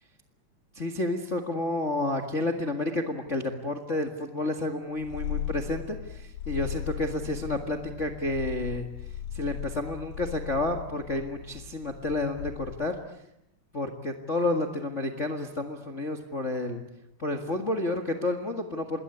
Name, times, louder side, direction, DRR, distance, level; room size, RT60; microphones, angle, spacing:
voice 1, 0.7-8.9 9.3-13.0 13.7-16.8 17.2-19.0, left 2 dB, 30° left, 5 dB, 1.5 m, -30 dB
Purr, 5.0-13.1, left 10 dB, 75° left, 2.7 m, -38 dB
27.0 x 21.0 x 9.8 m, 0.83 s
omnidirectional pair, 3.9 m